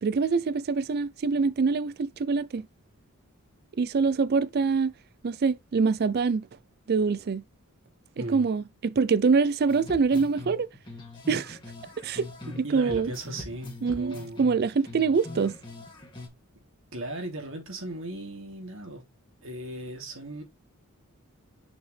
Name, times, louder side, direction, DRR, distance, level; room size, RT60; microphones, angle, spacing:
voice 1, 0.0-2.7 3.8-4.9 5.2-6.5 6.9-7.4 8.2-10.7 11.3-11.6 12.0-12.3 12.7-13.1 13.8-15.5, right 5 dB, 45° right, 0.4 m, -25 dB
voice 2, 8.2-8.5 12.4-14.4 16.9-19.0 19.4-20.4, right 1 dB, 60° right, 3.0 m, -37 dB
sound 1, 9.7-12.6 12.9-16.3, left 2 dB, 20° left, 2.2 m, -42 dB
6.6 x 5.0 x 3.3 m
head